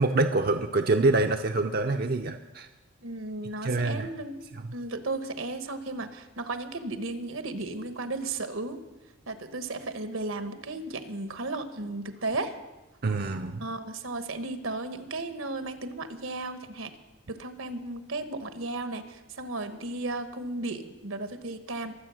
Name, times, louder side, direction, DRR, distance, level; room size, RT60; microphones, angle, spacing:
voice 1, 0.0-2.7 3.6-4.1 4.5-4.6 13.0-13.7, right 2 dB, 45° right, 5 dB, 0.6 m, -26 dB
voice 2, 3.0-4.3 4.7-8.8 9.3-12.5 13.6-16.9 17.3-21.9, right 2 dB, 75° right, 9 dB, 1.2 m, -34 dB
23.0 x 7.9 x 6.3 m, 1.1 s
head